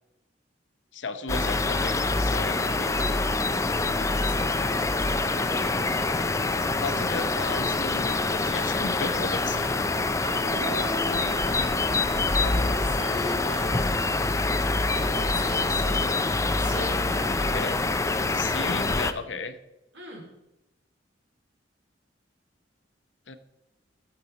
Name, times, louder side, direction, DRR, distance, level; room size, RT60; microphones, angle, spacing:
voice 1, 0.9-3.1 6.8-9.7 11.1-11.3 17.4-17.8 18.3-19.6 23.3-23.4, left 4 dB, 85° left, 10 dB, 0.9 m, -35 dB
sound 1, 1.3-19.1, left 3 dB, 15° left, 0.5 m, -25 dB
voice 2, 2.9-3.2 3.8-6.0 10.2-11.7 12.3-14.0 14.9-16.3 16.6-17.6 19.9-20.3, equal, 85° right, -1 dB, 3.9 m, -39 dB
15.5 x 7.1 x 4.1 m, 0.94 s
head